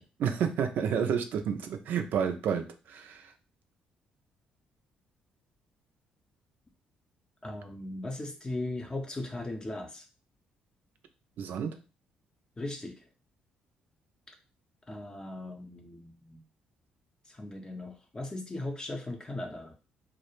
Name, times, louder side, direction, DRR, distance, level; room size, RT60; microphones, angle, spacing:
voice 1, 0.2-3.3 11.4-11.8, right 7 dB, 70° right, 8 dB, 0.4 m, -30 dB
voice 2, 7.4-10.1 12.6-13.1 14.3-14.4 14.9-16.4 17.3-19.7, left 2 dB, 25° left, 3 dB, 0.5 m, -38 dB
2.3 x 2.1 x 3.0 m, 0.32 s
supercardioid pair, 60°, 3 cm